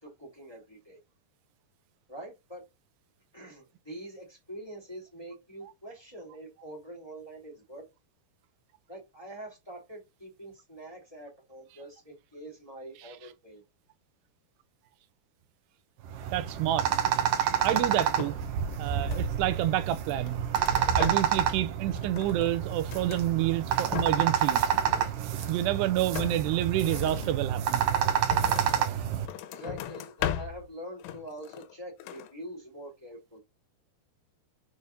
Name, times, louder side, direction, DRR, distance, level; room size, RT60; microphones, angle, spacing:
voice 1, 0.0-1.0 2.1-2.6 3.3-7.8 8.9-13.6 22.2-22.4 29.5-33.4, right 1 dB, 5° left, 2.5 m, -45 dB
sound 1, 16.1-29.3, right 9 dB, 70° right, 2.2 m, -28 dB
voice 2, 16.3-16.9 17.6-18.3 18.8-20.4 21.0-24.7 25.5-27.9, right 13 dB, 90° right, 2.8 m, -28 dB
sound 2, 17.5-18.5 18.8-19.6 20.1-21.5 21.8-23.3 23.7-24.4 24.7-25.6 26.1-28.9 29.3-30.7 31.0-31.7 32.0-32.3, left 10 dB, 85° left, 2.8 m, -38 dB
7.0 x 4.8 x 4.1 m
omnidirectional pair, 4.7 m